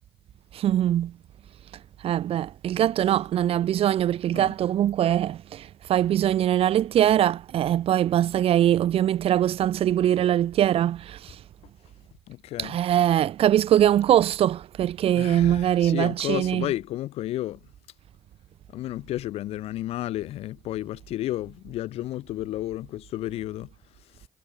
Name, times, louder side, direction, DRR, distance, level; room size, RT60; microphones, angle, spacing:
voice 1, 0.5-1.1 2.0-5.6 5.9-11.2 12.6-16.6, right 11 dB, 65° right, 1.4 m, -22 dB
voice 2, 12.3-12.8 15.1-17.6 18.7-23.7 24.0-24.2, left 14 dB, 75° left, 4.2 m, -32 dB
hypercardioid pair, 45°, 11 cm